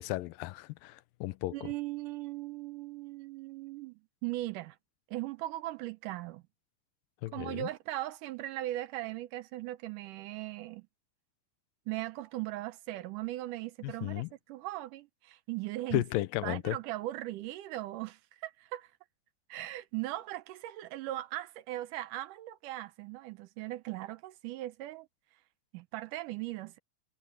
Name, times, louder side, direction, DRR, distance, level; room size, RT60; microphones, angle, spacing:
voice 1, 0.0-1.7 7.2-7.7 13.8-14.3 15.9-16.8, left 17 dB, 90° left, 2.3 m, -34 dB
voice 2, 1.5-4.8 5.1-6.4 7.3-10.9 11.9-16.0 16.4-18.9 19.5-25.1 25.7-26.8, right 16 dB, 75° right, 2.1 m, -39 dB
omnidirectional pair, 4.0 m